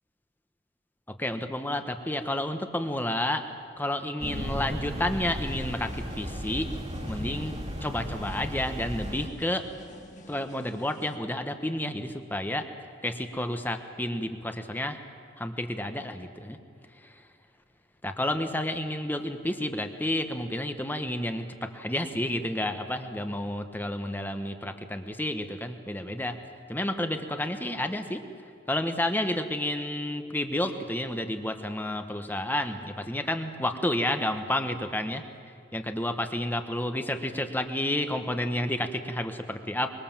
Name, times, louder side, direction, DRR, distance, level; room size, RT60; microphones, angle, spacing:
voice 1, 1.1-3.4 3.8-6.7 7.1-9.6 10.3-12.7 13.0-15.0 15.4-16.6 16.9-17.2 18.0-26.4 26.7-28.2 28.7-35.2 35.7-39.9, left 1 dB, 10° left, 7 dB, 1.3 m, -30 dB
sound 1, 4.2-9.3, equal, 35° right, 2.4 m, -35 dB
sound 2, 5.4-11.2, left 1 dB, 40° left, 1.6 m, -51 dB
24.5 x 23.5 x 7.5 m, 2.5 s
head